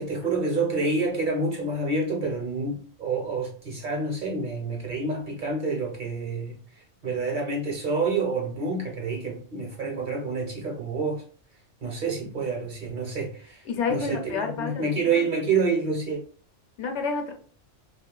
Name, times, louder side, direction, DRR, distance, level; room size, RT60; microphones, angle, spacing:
voice 1, 0.0-6.6 7.0-11.2 11.8-13.6 13.9-16.2, right 3 dB, 50° right, 0.8 m, -28 dB
voice 2, 13.7-15.3 16.8-17.3, left 5 dB, 75° left, 0.9 m, -29 dB
3.0 x 2.4 x 2.2 m
omnidirectional pair, 1.2 m